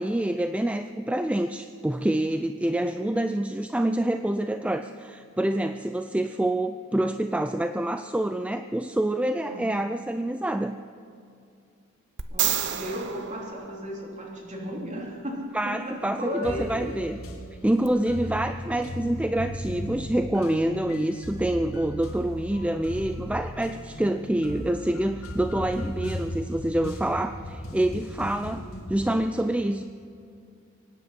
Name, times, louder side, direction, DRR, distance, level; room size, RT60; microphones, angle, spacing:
voice 1, 0.0-10.8 15.5-17.2 17.6-29.8, right 1 dB, 5° right, 8 dB, 0.4 m, -27 dB
sound 1, 12.2-14.4 17.8-17.9, right 10 dB, 60° right, 0.9 m, -30 dB
voice 2, 12.3-16.9 18.6-18.9, equal, 35° right, -2 dB, 3.4 m, -35 dB
sound 2, 16.4-29.2, left 1 dB, 80° left, 2.7 m, -37 dB
24.5 x 9.8 x 5.8 m, 2.5 s
head